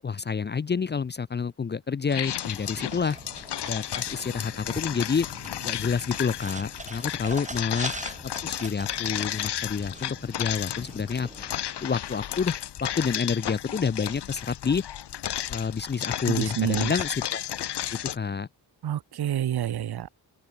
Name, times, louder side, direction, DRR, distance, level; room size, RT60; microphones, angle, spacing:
voice 1, 0.0-3.2 3.7-5.3 5.6-7.9 8.4-11.3 11.8-12.5 12.8-14.8 15.5-17.4 17.9-18.5, left 5 dB, 25° left, 0.6 m, -28 dB
sound 1, 2.1-18.2, left 11 dB, 75° left, 2.4 m, -33 dB
sound 2, 2.6-11.6, right 3 dB, 15° right, 7.4 m, -42 dB
Thunder, 3.4-10.5, left 9 dB, 60° left, 3.1 m, -48 dB
voice 2, 16.3-16.9 18.8-20.1, right 11 dB, 65° right, 1.6 m, -28 dB
open air
wide cardioid pair, 165°, 41 cm